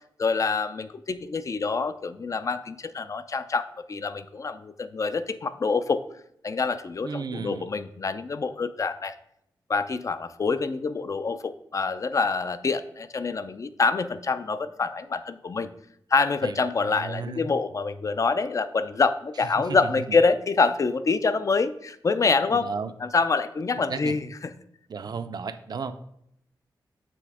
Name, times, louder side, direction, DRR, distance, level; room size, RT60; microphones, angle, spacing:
voice 1, 0.2-6.0 6.4-9.1 9.7-15.7 16.1-22.7 23.0-24.5, left 4 dB, 40° left, 13 dB, 0.4 m, -26 dB
voice 2, 7.0-7.7 16.4-17.4 19.6-20.2 22.5-22.9 23.7-24.2 24.9-25.9, right 5 dB, 55° right, 11 dB, 0.5 m, -34 dB
7.7 x 3.4 x 4.8 m, 0.75 s
wide cardioid pair, 100°, 8 cm